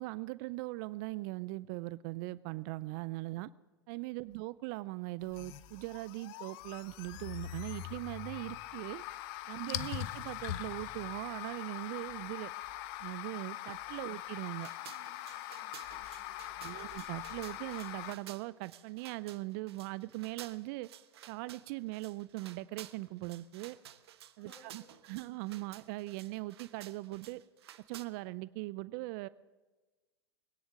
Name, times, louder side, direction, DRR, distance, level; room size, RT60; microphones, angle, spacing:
voice 1, 0.0-3.5 3.9-9.0 9.5-12.5 13.0-14.7 16.6-20.9 21.3-23.8 24.4-27.4 27.9-29.3, right 20 dB, 50° right, 18 dB, 0.5 m, -40 dB
sound 1, 5.2-18.1, left 14 dB, 50° left, 0.8 m, -42 dB
voice 2, 9.5-10.1 13.6-13.7 14.0-14.1 14.8-16.8 24.4-25.3, left 1 dB, 30° left, 4 dB, 5.5 m, -64 dB
sound 2, 14.6-28.1, right 11 dB, 70° right, 1.1 m, -53 dB
22.0 x 10.0 x 6.4 m, 1.2 s
hypercardioid pair, 100°, 14 cm